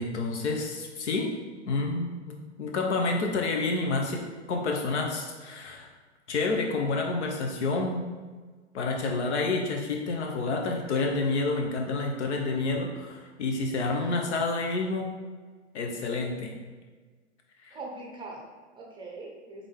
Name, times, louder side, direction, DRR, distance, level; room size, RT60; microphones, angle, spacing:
voice 1, 0.0-1.3 1.7-5.9 6.3-8.0 8.7-15.1 15.7-16.5 17.7-17.8, left 3 dB, 65° left, 2 dB, 1.0 m, -29 dB
voice 2, 17.7-19.7, right 2 dB, 15° right, -1 dB, 0.6 m, -42 dB
3.7 x 3.6 x 3.7 m, 1.4 s
hypercardioid pair, 120°, 36 cm